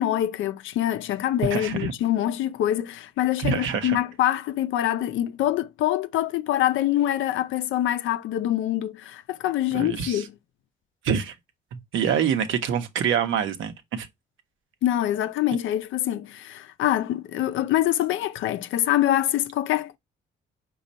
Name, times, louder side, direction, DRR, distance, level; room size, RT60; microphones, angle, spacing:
voice 1, 0.0-10.3 14.8-20.0, left 12 dB, 80° left, 0.5 m, -25 dB
voice 2, 1.5-1.9 3.4-4.0 9.7-10.2 11.0-11.3 11.9-14.1, right 7 dB, 80° right, 0.8 m, -25 dB
5.1 x 2.3 x 4.0 m
cardioid pair, 90°, 20 cm